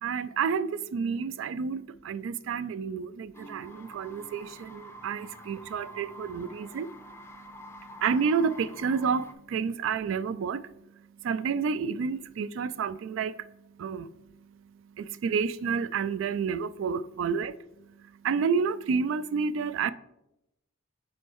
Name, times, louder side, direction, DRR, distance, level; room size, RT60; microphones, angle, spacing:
voice 1, 0.0-6.9 7.5-10.7 11.2-13.5 13.8-14.1 15.0-17.5 18.0-19.9, right 6 dB, 65° right, 0.3 m, -30 dB
sound 1, 3.3-9.3, equal, 10° left, 0.5 m, -47 dB
6.1 x 4.4 x 4.6 m
head